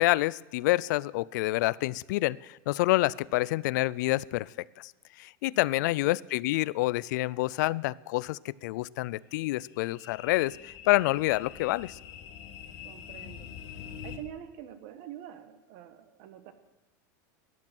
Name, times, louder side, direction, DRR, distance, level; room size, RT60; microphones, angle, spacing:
voice 1, 0.0-4.9 5.2-12.0, left 19 dB, 65° left, 23 dB, 0.4 m, -28 dB
voice 2, 5.8-6.2 12.8-13.5 14.0-16.5, right 11 dB, 55° right, 11 dB, 1.3 m, -46 dB
sound 1, 9.1-14.2, left 8 dB, 45° left, 1.4 m, -45 dB
14.0 x 11.0 x 6.0 m, 1.1 s
supercardioid pair, 145°, 10 cm